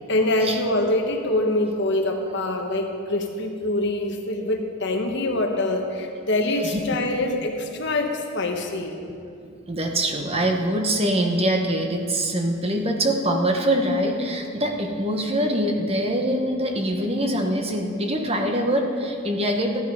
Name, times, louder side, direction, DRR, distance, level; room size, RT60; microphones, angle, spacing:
voice 1, 0.1-8.9, left 2 dB, 55° left, 3 dB, 1.3 m, -24 dB
voice 2, 9.4-19.8, right 1 dB, 30° right, 3 dB, 1.2 m, -24 dB
14.5 x 11.5 x 5.2 m, 2.4 s
head